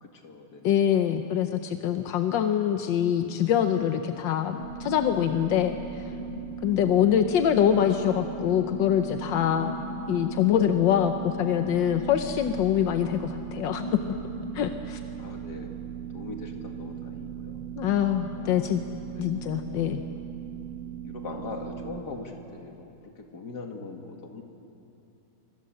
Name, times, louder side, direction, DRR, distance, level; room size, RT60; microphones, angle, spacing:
voice 1, 0.0-0.8 6.7-7.0 15.2-15.7 16.1-17.6 18.3-18.7 19.1-19.2 21.0-24.4, left 3 dB, 65° left, 3 dB, 2.7 m, -41 dB
voice 2, 0.6-6.0 6.6-9.7 10.1-14.0 14.5-15.0 17.8-18.8 19.2-20.0, left 10 dB, 90° left, 7 dB, 1.6 m, -24 dB
sound 1, 3.0-15.6, left 4 dB, 25° left, 1.3 m, -41 dB
sound 2, 4.6-22.0, right 10 dB, 65° right, 1.8 m, -39 dB
25.0 x 24.5 x 7.7 m, 2.9 s
omnidirectional pair, 1.9 m